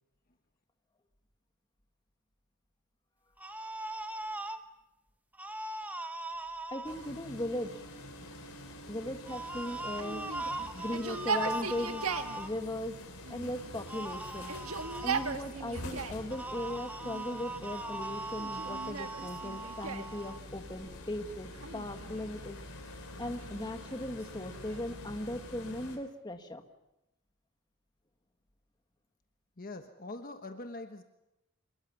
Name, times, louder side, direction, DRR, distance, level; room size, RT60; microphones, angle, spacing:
sound 1, 3.4-4.6 5.3-6.9 9.3-12.5 13.9-15.3 16.3-20.4, right 2 dB, 5° right, 1.0 m, -40 dB
voice 1, 6.7-7.8 8.9-10.2 10.7-12.1 12.4-13.0 13.3-14.5 15.0-22.6 23.2-26.6, left 1 dB, 20° left, 6 dB, 1.6 m, -38 dB
sound 2, 6.8-26.0, left 1 dB, 85° left, 4.5 m, -47 dB
Yell, 10.0-12.4 13.2-14.0 14.4-16.3 17.0-17.7 18.4-20.2 21.5-22.4 23.2-25.0, right 5 dB, 75° right, 1.6 m, -39 dB
voice 2, 29.6-31.0, left 2 dB, 40° left, 6 dB, 1.2 m, -44 dB
26.5 x 21.5 x 7.1 m, 0.94 s
head